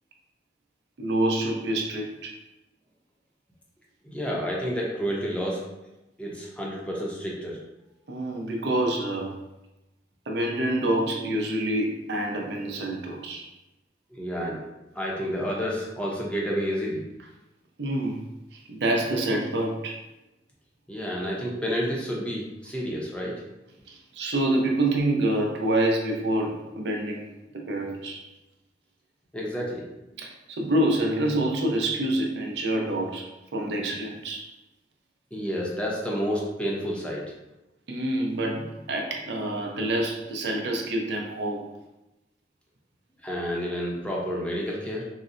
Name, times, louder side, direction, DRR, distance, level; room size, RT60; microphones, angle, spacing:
voice 1, 1.0-2.4 8.1-9.4 10.3-13.5 17.8-20.0 23.9-27.3 27.5-28.3 30.2-34.5 37.9-41.7, right 1 dB, 70° right, 1 dB, 0.5 m, -27 dB
voice 2, 4.0-5.6 6.2-7.6 14.1-14.6 14.9-17.0 20.9-23.4 29.3-30.1 35.3-37.2 43.2-45.0, equal, 5° left, -4 dB, 0.6 m, -30 dB
3.8 x 2.0 x 2.5 m, 0.95 s
head